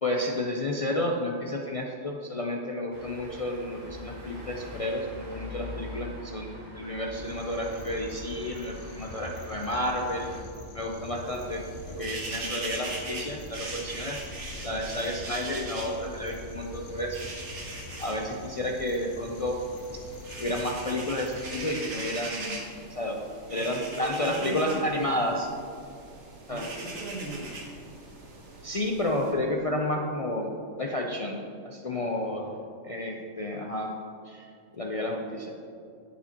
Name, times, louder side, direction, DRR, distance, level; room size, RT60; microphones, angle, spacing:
voice 1, 0.0-10.3 10.7-14.2 14.6-17.3 18.0-19.6 20.4-22.6 22.9-23.2 23.5-25.5 26.5-26.6 28.6-30.5 30.8-31.4 31.6-32.5 32.8-33.9 34.3-34.4 34.8-35.5, left 1 dB, 50° left, 0 dB, 0.4 m, -31 dB
sound 1, 2.9-10.4, left 2 dB, 45° right, 2.0 m, -43 dB
sound 2, 7.1-21.7, left 2 dB, 75° left, 1.1 m, -45 dB
sound 3, 11.0-29.3, right 2 dB, 65° right, 1.4 m, -41 dB
voice 2, 24.1-24.9 25.2-25.4 26.5-27.7 31.9-32.6 34.7-35.0, right 2 dB, 90° right, -3 dB, 2.1 m, -41 dB
8.3 x 8.3 x 2.9 m, 2.5 s
omnidirectional pair, 1.3 m